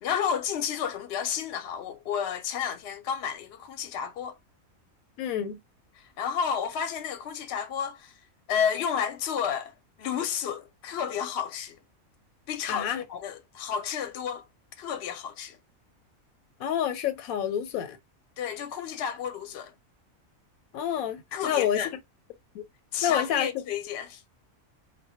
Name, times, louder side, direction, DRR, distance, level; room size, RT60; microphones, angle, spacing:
voice 1, 0.0-4.4 6.0-8.1 8.5-9.7 10.0-11.8 12.5-14.5 14.8-15.6 18.4-19.7 21.3-21.9 22.9-24.2, left 8 dB, 60° left, 0.8 m, -31 dB
voice 2, 5.2-5.6 12.7-13.0 16.6-18.0 20.7-22.0 22.5-22.6 23.0-23.6, left 9 dB, 85° left, 1.0 m, -28 dB
2.2 x 2.1 x 2.7 m
omnidirectional pair, 1.4 m